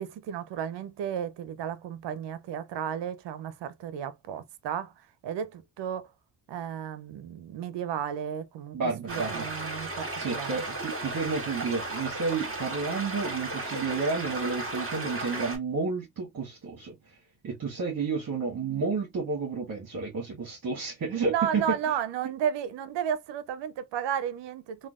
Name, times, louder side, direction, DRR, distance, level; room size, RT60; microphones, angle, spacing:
voice 1, 0.0-6.1 6.5-10.6 21.3-24.9, right 9 dB, 65° right, 0.6 m, -33 dB
voice 2, 8.7-9.5 10.2-16.9 17.4-21.6, right 4 dB, 45° right, 1.2 m, -31 dB
sound 1, 9.1-15.6, right 2 dB, 30° right, 1.8 m, -35 dB
3.2 x 2.3 x 2.4 m
supercardioid pair, 65°, 47 cm